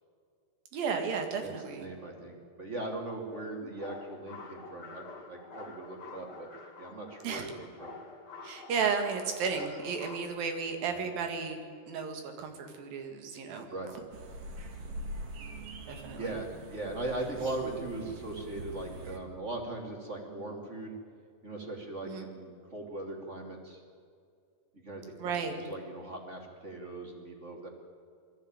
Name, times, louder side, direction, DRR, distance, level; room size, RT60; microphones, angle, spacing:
voice 1, 0.7-1.9 7.2-7.5 8.4-11.6 11.9-13.7 15.9-16.4 22.0-22.3 25.2-25.6, right 5 dB, 85° right, 5 dB, 3.8 m, -33 dB
voice 2, 1.4-6.5 6.8-8.0 10.9-11.1 13.7-13.9 16.2-20.9 21.4-23.8 24.8-27.7, right 2 dB, 20° right, 1 dB, 2.8 m, -39 dB
sound 1, 3.3-10.3, left 4 dB, 35° left, 2.3 m, -48 dB
sound 2, 14.1-19.2, right 1 dB, 50° right, 2.7 m, -43 dB
21.0 x 14.5 x 9.0 m, 2.3 s
omnidirectional pair, 4.0 m